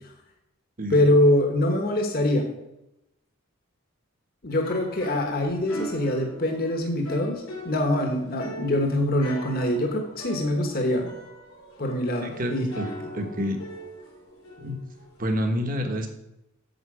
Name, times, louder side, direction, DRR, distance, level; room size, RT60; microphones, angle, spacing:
voice 1, 0.9-2.5 4.4-11.1 11.8-12.7, left 1 dB, 45° left, 3 dB, 1.1 m, -24 dB
sound 1, 4.5-15.2, equal, 90° left, 3.0 m, -41 dB
voice 2, 12.2-12.8 13.1-13.6 14.6-14.8 15.2-16.1, equal, 40° right, 5 dB, 1.2 m, -28 dB
8.2 x 7.2 x 4.9 m, 0.87 s
head